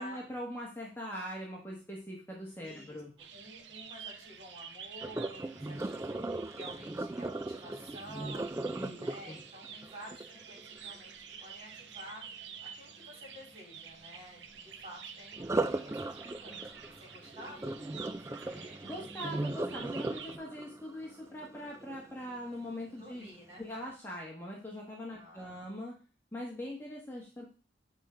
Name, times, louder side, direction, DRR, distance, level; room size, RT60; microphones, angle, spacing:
voice 1, 0.0-3.1 8.7-9.4 18.8-23.3 23.6-25.9 26.3-27.4, equal, 10° left, -3 dB, 1.3 m, -42 dB
voice 2, 2.6-18.8 23.0-23.6 25.1-25.6, equal, 30° right, -2 dB, 3.7 m, -51 dB
sound 1, 3.2-20.4, right 7 dB, 85° right, 0.8 m, -49 dB
Sink (filling or washing), 5.0-11.0 15.3-22.4 22.9-23.2 23.7-23.8, right 2 dB, 15° right, 0.3 m, -38 dB
8.0 x 3.7 x 4.4 m, 0.36 s
head